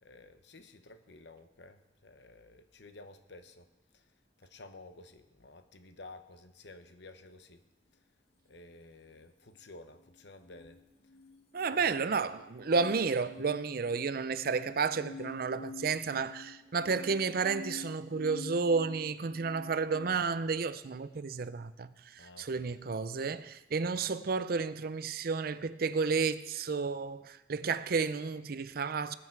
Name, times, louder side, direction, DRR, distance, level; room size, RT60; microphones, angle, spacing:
voice 1, 0.0-3.7 3.9-4.1 4.4-7.6 8.4-10.8 11.7-12.0 22.2-22.7, left 2 dB, 70° left, 1.0 m, -53 dB
sound 1, 10.4-20.1, left 3 dB, 35° left, 1.0 m, -48 dB
voice 2, 11.5-29.1, right 5 dB, 55° right, 0.5 m, -32 dB
19.5 x 7.9 x 4.6 m
head